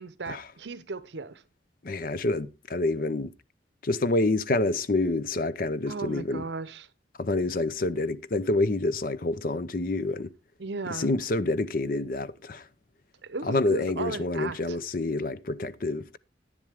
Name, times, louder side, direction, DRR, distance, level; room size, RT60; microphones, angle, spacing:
voice 1, 0.0-1.4 5.9-6.9 10.6-11.2 13.2-14.8, right 3 dB, 70° right, 0.7 m, -36 dB
voice 2, 1.8-3.3 3.8-6.5 7.2-10.3 10.9-12.7 13.4-16.2, left 2 dB, 45° left, 0.5 m, -27 dB
10.5 x 9.8 x 3.5 m
head